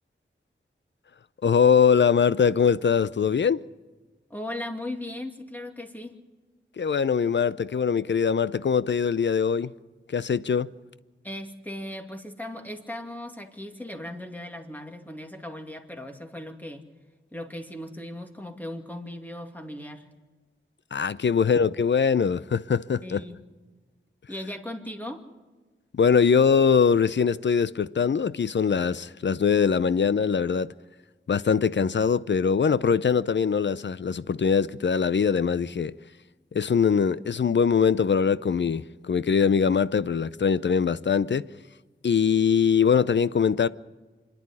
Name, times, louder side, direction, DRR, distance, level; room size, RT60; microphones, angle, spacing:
voice 1, 1.4-3.6 6.8-9.7 10.1-10.7 20.9-23.3 25.9-30.7 31.3-35.9 36.5-41.4 42.0-43.7, left 6 dB, 60° left, 0.6 m, -22 dB
voice 2, 4.3-6.2 11.2-16.9 17.3-20.1 23.0-23.4 24.3-25.2, left 1 dB, 10° left, 2.6 m, -37 dB
26.0 x 11.0 x 9.8 m
cardioid pair, 50°, 21 cm